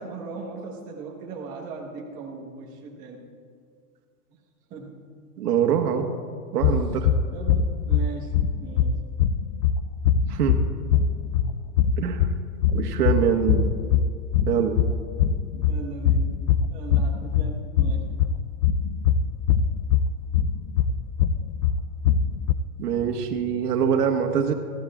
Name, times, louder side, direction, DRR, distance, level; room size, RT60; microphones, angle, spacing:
voice 1, 0.0-3.2 4.7-5.1 6.6-6.7 7.3-8.3 8.6-9.0 14.5-14.8 15.5-16.3 16.7-18.1, right 4 dB, 15° right, -1 dB, 1.2 m, -38 dB
voice 2, 5.4-6.1 6.5-7.1 10.3-10.6 12.0-12.3 12.7-13.7 14.5-14.8 22.8-24.5, right 8 dB, 80° right, 3 dB, 1.6 m, -24 dB
sound 1, 6.6-22.5, left 7 dB, 90° left, 0.7 m, -23 dB
19.0 x 14.5 x 2.4 m, 2.2 s
supercardioid pair, 170°, 46 cm